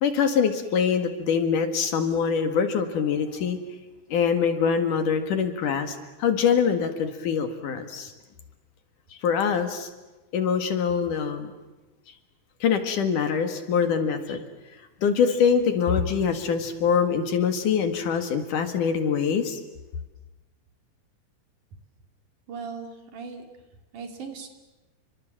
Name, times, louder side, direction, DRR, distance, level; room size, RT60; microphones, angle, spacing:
voice 1, 0.0-3.6 4.1-8.1 9.1-9.9 10.3-11.5 12.6-14.4 15.0-19.6, left 6 dB, 60° left, 7 dB, 3.2 m, -24 dB
voice 2, 22.5-23.4 23.9-24.5, right 5 dB, 55° right, 4 dB, 4.0 m, -38 dB
29.5 x 25.5 x 7.5 m, 1.1 s
omnidirectional pair, 4.3 m